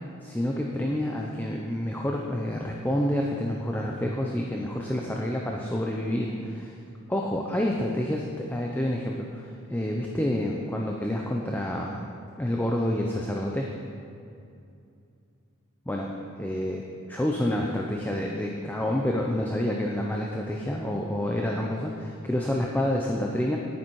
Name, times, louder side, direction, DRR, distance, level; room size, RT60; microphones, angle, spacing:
voice 1, 0.2-6.8 7.1-12.0 12.4-13.7 15.9-16.1 16.4-23.6, left 1 dB, 10° left, -1 dB, 0.6 m, -28 dB
10.0 x 9.8 x 4.7 m, 2.5 s
head